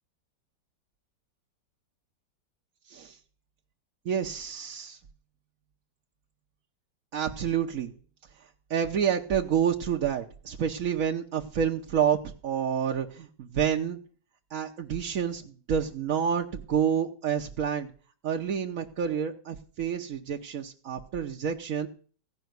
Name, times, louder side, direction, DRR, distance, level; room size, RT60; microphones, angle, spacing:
voice 1, 4.0-5.0 7.1-7.9 8.7-12.2 12.4-14.0 14.5-17.9 18.2-21.9, right 8 dB, 55° right, 1 dB, 1.1 m, -28 dB
16.0 x 5.5 x 9.3 m, 0.42 s
omnidirectional pair, 2.0 m